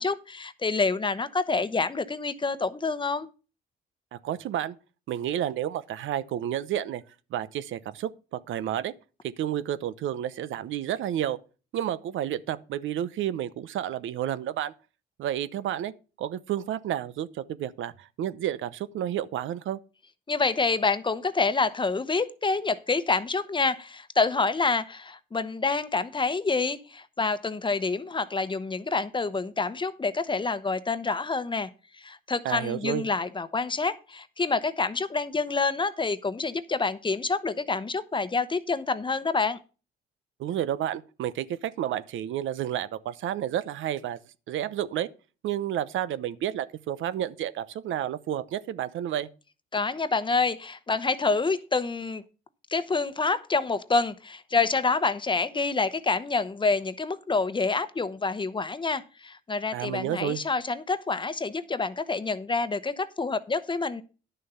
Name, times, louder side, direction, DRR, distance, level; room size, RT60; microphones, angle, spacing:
voice 1, 0.0-3.3 20.3-31.7 32.0-39.6 49.7-52.2 52.7-64.0, left 4 dB, 25° left, 0.9 m, -27 dB
voice 2, 4.1-4.8 5.1-7.0 7.3-8.9 9.4-11.4 11.7-14.7 15.2-15.9 16.2-19.8 32.4-33.1 40.4-44.2 44.5-45.1 45.4-49.3 59.7-60.4, right 11 dB, 80° right, 0.8 m, -31 dB
11.0 x 6.7 x 5.6 m
cardioid pair, 90°, 20 cm